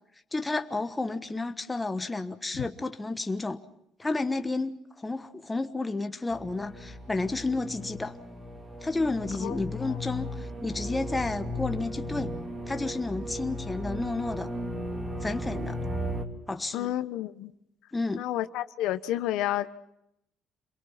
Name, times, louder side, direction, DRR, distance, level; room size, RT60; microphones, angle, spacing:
voice 1, 0.3-3.6 4.0-8.2 8.8-12.3 12.7-14.5 15.2-15.8 16.5-16.9 17.9-18.2, left 3 dB, 10° left, 8 dB, 1.2 m, -31 dB
sound 1, 6.3-16.2, left 1 dB, 20° right, 2.4 m, -36 dB
voice 2, 9.4-10.0 16.7-17.5 18.2-19.7, left 13 dB, 75° left, 11 dB, 1.1 m, -31 dB
28.5 x 22.5 x 5.8 m, 0.78 s
cardioid pair, 140°, 0 cm